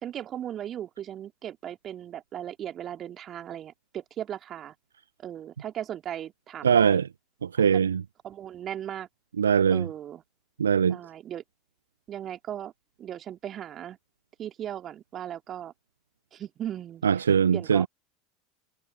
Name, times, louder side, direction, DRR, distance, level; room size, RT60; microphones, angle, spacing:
voice 1, 0.0-4.7 5.2-7.0 7.6-7.8 8.2-9.1 9.7-10.2 10.9-11.4 12.1-12.7 13.0-14.0 14.4-15.7 16.3-17.0 17.5-17.9, right 10 dB, 35° right, 3.3 m, -37 dB
voice 2, 6.6-7.1 7.4-8.0 9.4-9.9 10.6-11.0 17.0-17.9, right 7 dB, 80° right, 0.4 m, -21 dB
figure-of-eight pair, 75°, 0 cm